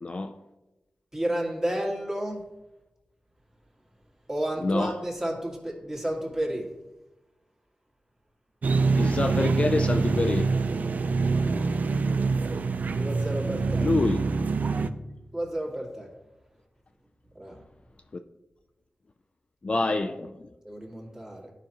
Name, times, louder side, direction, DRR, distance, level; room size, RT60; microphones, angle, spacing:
voice 1, 0.0-0.4 4.6-5.0 9.0-10.5 13.8-14.3 19.6-20.5, left 3 dB, 40° left, 0.4 m, -26 dB
voice 2, 1.1-2.4 4.3-6.7 12.9-13.9 15.3-16.1 17.4-17.6 20.6-21.5, right 1 dB, 20° right, 1.9 m, -31 dB
sound 1, 8.6-14.9, right 4 dB, 60° right, 0.4 m, -25 dB
12.0 x 5.1 x 2.9 m
wide cardioid pair, 90°, 3 cm